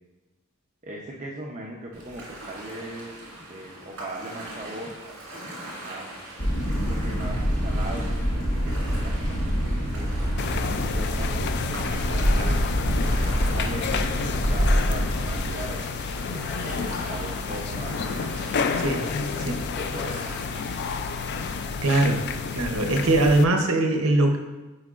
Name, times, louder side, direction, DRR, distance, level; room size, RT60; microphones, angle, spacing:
voice 1, 0.8-3.1 3.5-5.1 5.8-6.3 6.7-8.1 8.3-11.3 11.9-12.7 13.0-15.8 16.3-17.9 19.0-20.2, right 1 dB, 30° right, -3 dB, 0.6 m, -39 dB
Ocean, 1.9-21.0, right 1 dB, 60° right, 1.9 m, -42 dB
sound 1, 6.4-15.5, equal, 75° left, 1.3 m, -25 dB
sound 2, 10.4-23.4, left 5 dB, 50° left, 0.3 m, -30 dB
voice 2, 18.8-19.1 19.4-19.6 21.8-22.3 22.5-24.4, right 2 dB, 80° right, 4 dB, 0.8 m, -21 dB
8.6 x 4.5 x 2.4 m, 1.1 s
head